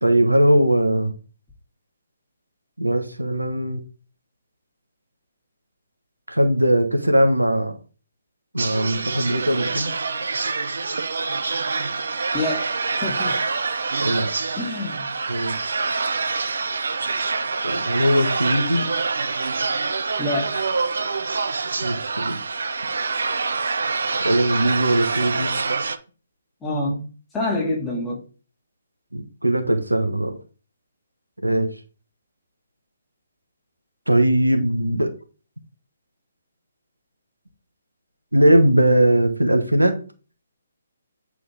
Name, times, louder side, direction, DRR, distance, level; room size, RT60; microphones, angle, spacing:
voice 1, 0.0-1.1 2.8-3.8 6.3-7.7 8.5-9.9 14.0-14.3 15.3-15.5 17.6-18.8 21.8-22.4 24.2-25.5 29.1-30.4 31.4-31.7 34.1-35.1 38.3-40.0, right 1 dB, 85° right, 7 dB, 1.3 m, -20 dB
sound 1, 8.6-26.0, right 4 dB, 60° right, 0.7 m, -26 dB
voice 2, 12.3-13.4 14.5-15.1 20.2-20.7 26.6-27.1 27.3-28.2, left 2 dB, 10° left, -4 dB, 2.3 m, -27 dB
8.9 x 4.6 x 3.5 m, 0.36 s
figure-of-eight pair, 135°, 0 cm